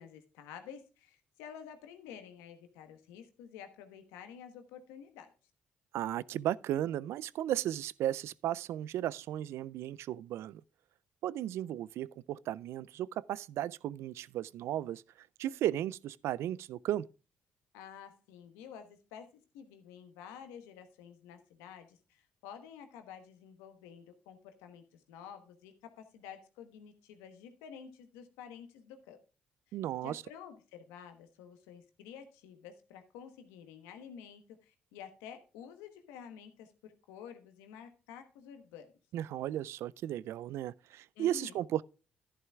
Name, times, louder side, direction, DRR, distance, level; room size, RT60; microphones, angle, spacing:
voice 1, 0.0-5.3 17.7-29.2 29.7-29.8 30.0-38.9 41.2-41.6, left 8 dB, 90° left, 1.2 m, -50 dB
voice 2, 5.9-10.6 11.2-17.1 29.7-30.2 39.1-41.8, right 12 dB, 70° right, 0.3 m, -35 dB
11.0 x 10.5 x 2.3 m
supercardioid pair, 60°, 5 cm